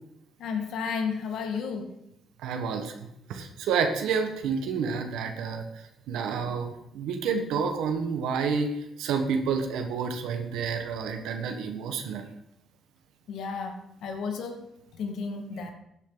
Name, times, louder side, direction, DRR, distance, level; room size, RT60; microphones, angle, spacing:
voice 1, 0.4-1.9 13.3-14.7 15.0-15.7, left 5 dB, 75° left, 5 dB, 2.0 m, -32 dB
voice 2, 2.4-12.3, right 5 dB, 90° right, 5 dB, 1.5 m, -29 dB
16.0 x 9.0 x 4.0 m, 0.79 s
cardioid pair, 90°, 0 cm